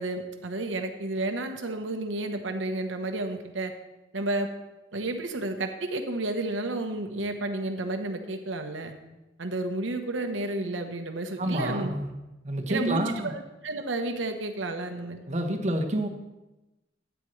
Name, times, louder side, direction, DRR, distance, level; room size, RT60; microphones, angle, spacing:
voice 1, 0.0-3.7 4.1-4.5 4.9-8.9 9.4-11.9 12.7-15.2, right 2 dB, 90° right, 6 dB, 1.1 m, -31 dB
voice 2, 11.4-12.1 12.4-13.3 15.3-16.1, right 1 dB, 40° right, 3 dB, 1.1 m, -28 dB
12.5 x 9.2 x 3.2 m, 1.0 s
head